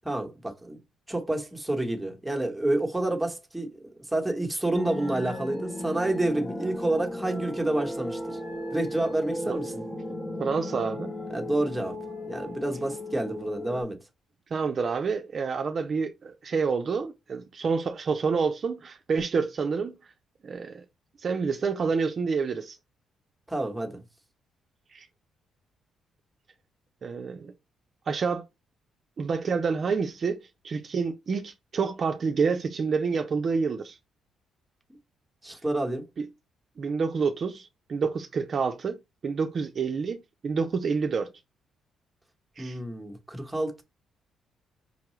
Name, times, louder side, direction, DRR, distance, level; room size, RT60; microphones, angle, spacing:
voice 1, 0.0-0.8 1.1-8.4 8.7-9.8 11.3-12.0 12.2-14.0 23.5-24.0 35.4-36.0 42.6-43.8, right 1 dB, 5° right, 1.1 m, -29 dB
sound 1, 4.7-13.8, left 1 dB, 20° left, 0.9 m, -36 dB
voice 2, 10.4-11.1 14.5-19.9 20.4-20.8 21.2-22.8 24.9-25.1 27.0-27.5 28.1-28.4 29.2-30.4 30.6-34.0 36.2-36.3 36.8-39.0 39.2-41.3 42.6-42.8, right 5 dB, 45° right, 0.5 m, -28 dB
5.4 x 2.2 x 3.1 m
cardioid pair, 90°, 0 cm